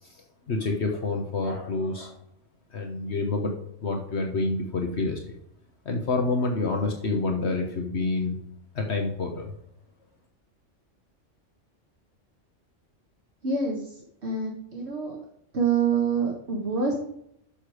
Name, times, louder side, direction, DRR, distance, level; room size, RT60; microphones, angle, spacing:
voice 1, 0.0-2.1 2.7-3.5 3.8-5.4 5.8-8.4 8.7-9.5, left 3 dB, 60° left, 3 dB, 1.5 m, -28 dB
voice 2, 13.4-15.2 15.5-16.9, right 5 dB, 60° right, -1 dB, 1.8 m, -26 dB
10.5 x 6.8 x 5.0 m, 0.72 s
omnidirectional pair, 1.3 m